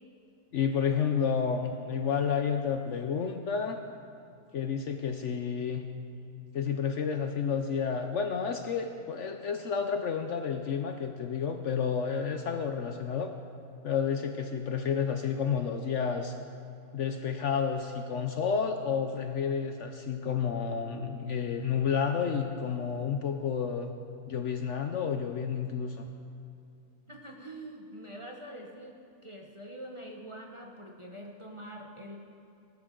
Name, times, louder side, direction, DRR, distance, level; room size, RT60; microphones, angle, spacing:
voice 1, 0.5-3.8 4.5-5.8 6.4-13.3 13.8-16.3 16.9-23.9 24.3-26.1, left 6 dB, 60° left, 6 dB, 0.9 m, -30 dB
voice 2, 27.1-29.0 29.2-32.2, right 1 dB, 25° right, 0 dB, 0.9 m, -44 dB
18.5 x 11.0 x 3.8 m, 2.6 s
omnidirectional pair, 1.6 m